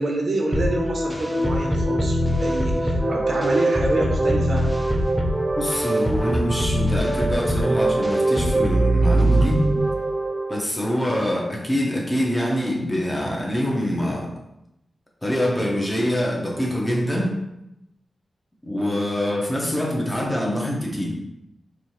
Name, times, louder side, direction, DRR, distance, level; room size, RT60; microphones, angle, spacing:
voice 1, 0.0-4.7, right 1 dB, 65° right, 1 dB, 0.8 m, -27 dB
sound 1, 0.5-10.6, right 1 dB, 10° right, 0.4 m, -22 dB
voice 2, 5.6-9.6 10.5-14.3 15.2-17.4 18.6-21.1, equal, 10° left, -2 dB, 0.8 m, -25 dB
4.3 x 2.6 x 3.1 m, 0.84 s
wide cardioid pair, 90°, 0 cm